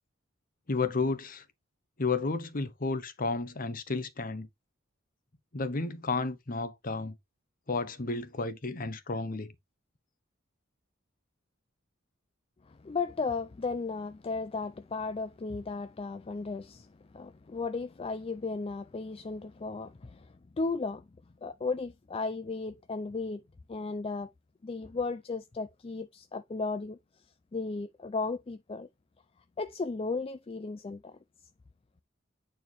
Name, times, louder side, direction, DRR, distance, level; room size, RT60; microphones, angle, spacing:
voice 1, 0.7-1.4 2.0-4.5 5.5-7.2 7.7-9.5, left 3 dB, 45° left, 1.0 m, -32 dB
voice 2, 12.6-21.1 21.4-23.4 23.7-24.3 24.6-27.0 27.5-28.9 29.6-31.2, left 4 dB, 30° left, 0.4 m, -35 dB
9.1 x 4.3 x 3.0 m
head